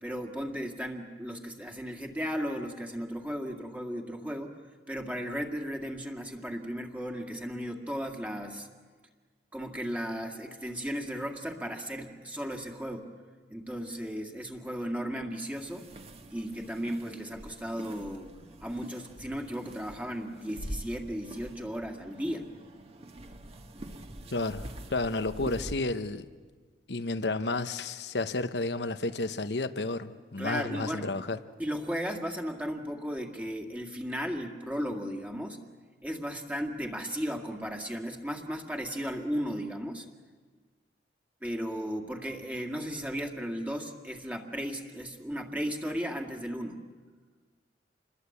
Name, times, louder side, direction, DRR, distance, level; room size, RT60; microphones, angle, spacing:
voice 1, 0.0-4.6 4.9-8.7 9.5-13.1 13.5-15.9 16.3-18.3 18.6-22.5 30.4-31.1 31.6-35.6 36.0-40.1 41.4-46.8, equal, 10° right, 2 dB, 2.0 m, -35 dB
sound 1, 15.5-25.7, right 1 dB, 35° right, 1.6 m, -45 dB
voice 2, 24.3-26.3 26.9-31.4, left 2 dB, 70° left, 12 dB, 1.0 m, -31 dB
28.0 x 21.5 x 8.5 m, 1.5 s
head